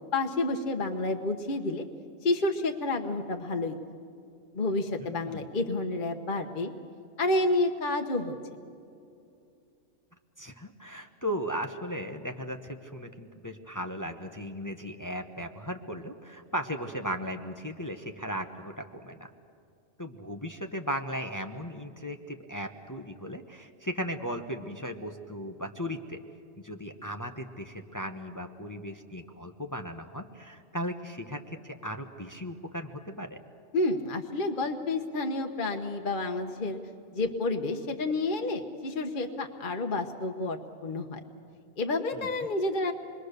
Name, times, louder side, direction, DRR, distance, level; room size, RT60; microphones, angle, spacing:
voice 1, 0.1-1.8 2.2-3.8 4.5-6.7 7.2-8.4 33.7-36.8 37.1-41.2 41.8-42.9, left 2 dB, 40° left, 4 dB, 1.1 m, -29 dB
voice 2, 5.0-5.4 10.4-19.3 20.0-26.2 26.6-33.4 42.1-42.3, equal, 15° left, 5 dB, 0.9 m, -37 dB
27.0 x 22.0 x 6.7 m, 2.6 s
omnidirectional pair, 1.3 m